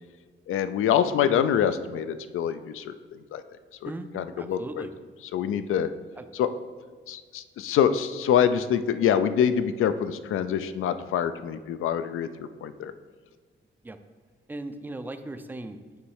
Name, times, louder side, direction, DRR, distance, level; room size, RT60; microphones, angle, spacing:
voice 1, 0.5-2.9 3.3-3.4 3.8-4.9 5.3-5.9 6.3-6.5 7.1-12.9, left 8 dB, 85° left, 11 dB, 0.4 m, -25 dB
voice 2, 4.4-4.9 6.2-6.3 13.8-14.0 14.5-16.0, right 2 dB, 10° right, 9 dB, 0.3 m, -38 dB
8.2 x 3.1 x 4.8 m, 1.5 s
wide cardioid pair, 130°, 21 cm